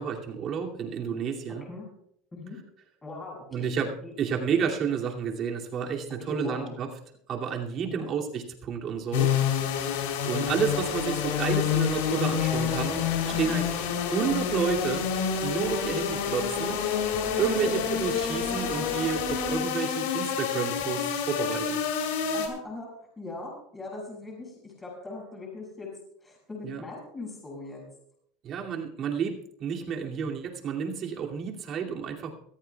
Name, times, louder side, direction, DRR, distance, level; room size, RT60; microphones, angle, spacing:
voice 1, 0.0-1.6 3.5-3.9 4.2-6.9 7.3-9.3 10.2-13.0 13.2-15.1 15.4-16.8 17.4-21.8 26.6-26.8 28.4-32.3, right 7 dB, 35° right, 0 dB, 2.6 m, -30 dB
voice 2, 3.0-3.7 4.0-4.1 6.3-6.8 7.9-8.1 13.3-13.6 17.5-18.2 22.3-22.9 23.2-25.9 26.2-27.8, left 2 dB, 15° left, -2 dB, 7.0 m, -40 dB
sound 1, 9.1-22.5, left 7 dB, 85° left, 3.5 m, -28 dB
sound 2, 10.4-19.6, left 5 dB, 30° left, 2.4 m, -40 dB
23.5 x 14.5 x 2.4 m, 0.71 s
supercardioid pair, 150°, 0 cm